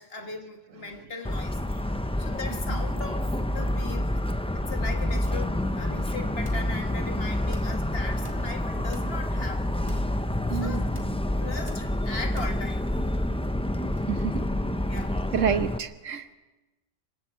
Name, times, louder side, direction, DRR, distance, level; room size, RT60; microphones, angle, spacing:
voice 1, 0.0-4.1 4.5-10.1 10.5-10.9 11.4-12.9 14.9-15.1, left 3 dB, 55° left, 4 dB, 1.9 m, -39 dB
Motor vehicle (road) / Siren, 1.2-15.8, left 1 dB, 10° left, 0.3 m, -28 dB
sound 1, 6.4-6.7 7.4-7.8 8.2-9.2 9.8-10.2 10.8-11.2 11.7-12.0 12.2-12.7 13.8-14.2 15.0-15.3, equal, 25° right, 3.0 m, -42 dB
voice 2, 10.5-10.8 14.1-14.5 15.3-16.3, right 8 dB, 90° right, 10 dB, 1.4 m, -28 dB
27.0 x 23.5 x 4.6 m, 1.2 s
omnidirectional pair, 1.3 m